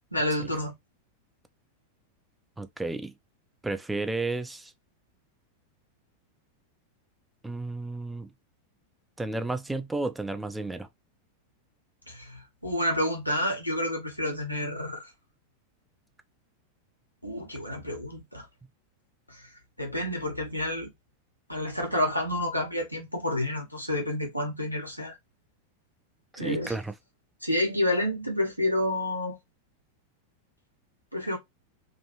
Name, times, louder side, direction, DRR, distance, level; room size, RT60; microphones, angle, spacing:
voice 1, 0.1-0.7 12.1-15.1 17.2-18.4 19.3-19.4 19.8-20.9 21.5-25.1 26.4-26.7 27.4-29.4 31.1-31.4, left 1 dB, 90° left, 1.1 m, -29 dB
voice 2, 2.6-3.1 3.6-4.7 7.4-8.3 9.2-10.9 26.3-26.9, right 2 dB, 5° right, 0.4 m, -32 dB
3.0 x 2.5 x 2.8 m
figure-of-eight pair, 90°, 0 cm